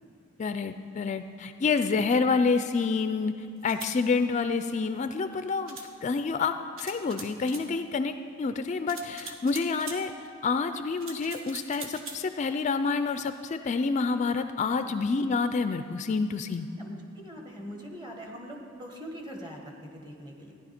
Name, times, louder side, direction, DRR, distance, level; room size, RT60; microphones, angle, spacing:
voice 1, 0.4-16.7, left 4 dB, 35° left, 9 dB, 0.3 m, -28 dB
sound 1, 3.6-4.0 5.7-5.9 6.8-7.7 8.9-10.0 11.0-12.2, right 4 dB, 70° right, 1.2 m, -42 dB
voice 2, 16.4-20.6, equal, 20° right, 1 dB, 1.5 m, -42 dB
15.0 x 10.5 x 4.3 m, 2.6 s
head